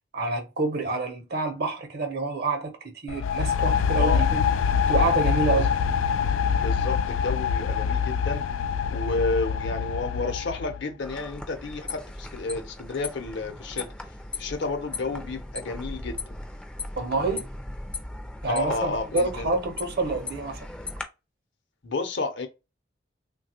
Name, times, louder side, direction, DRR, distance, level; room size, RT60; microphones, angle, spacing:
voice 1, 0.1-4.4 4.9-5.7 17.0-17.5 18.4-20.7, right 3 dB, 55° right, 0.8 m, -27 dB
sound 1, 3.1-10.8, left 7 dB, 85° left, 0.3 m, -25 dB
voice 2, 6.4-8.4 8.9-13.9 14.4-16.2 18.5-19.6 21.8-22.5, left 3 dB, 65° left, 0.7 m, -31 dB
sound 2, 11.0-21.0, left 3 dB, 5° left, 0.4 m, -38 dB
3.3 x 2.2 x 2.8 m
head